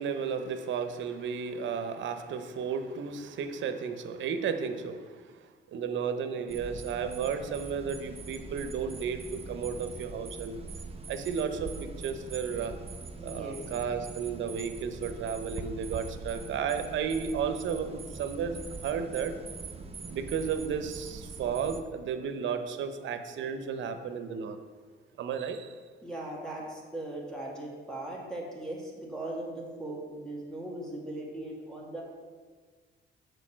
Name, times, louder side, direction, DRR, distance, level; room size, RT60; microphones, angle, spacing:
voice 1, 0.0-10.6 11.1-12.7 13.2-19.3 20.1-24.6 25.2-25.7, right 6 dB, 70° right, 8 dB, 0.8 m, -33 dB
sound 1, 6.5-21.8, right 3 dB, 30° right, 0.8 m, -43 dB
voice 2, 13.2-13.6 26.0-32.0, right 1 dB, 5° left, -4 dB, 2.1 m, -39 dB
6.6 x 4.6 x 6.1 m, 1.5 s
cardioid pair, 90°, 20 cm